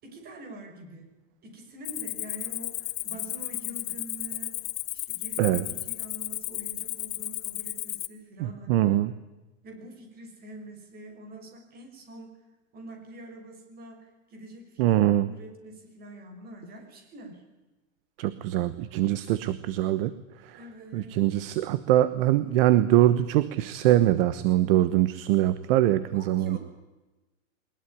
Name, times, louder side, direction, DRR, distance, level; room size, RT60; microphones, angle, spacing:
voice 1, 0.0-1.1 1.4-4.6 4.9-9.0 9.6-12.3 12.7-15.0 15.2-17.4 20.5-21.2 26.1-26.6, right 1 dB, 25° right, 5 dB, 6.1 m, -45 dB
Cricket, 1.8-8.1, left 20 dB, 30° left, 1.2 m, -34 dB
voice 2, 8.4-9.1 14.8-15.3 18.2-20.1 20.4-20.6 20.9-26.6, right 13 dB, 45° right, 15 dB, 1.2 m, -23 dB
22.5 x 20.5 x 10.0 m, 1.1 s
supercardioid pair, 160°, 38 cm